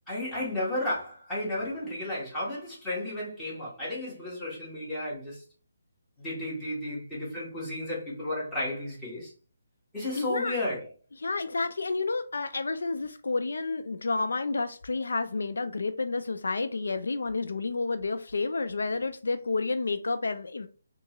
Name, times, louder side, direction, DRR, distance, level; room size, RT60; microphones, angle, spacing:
voice 1, 0.1-5.4 6.2-9.3 9.9-10.9, left 1 dB, 10° left, 1.4 m, -33 dB
voice 2, 10.1-10.6 11.2-20.7, left 3 dB, 80° left, 0.3 m, -30 dB
3.6 x 2.4 x 2.9 m
hypercardioid pair, 160°, 0 cm